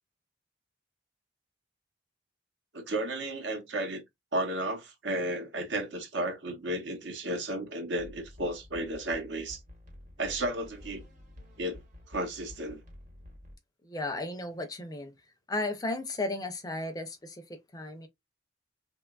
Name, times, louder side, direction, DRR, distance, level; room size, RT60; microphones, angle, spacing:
voice 1, 2.7-4.0 4.3-9.6 10.2-11.0 11.6-11.8 12.1-12.8, right 1 dB, 75° right, 0.8 m, -33 dB
sound 1, 8.0-13.6, left 1 dB, 40° right, 0.9 m, -50 dB
voice 2, 13.8-15.1 15.5-18.1, left 2 dB, 20° left, 0.4 m, -35 dB
2.9 x 2.2 x 2.2 m
head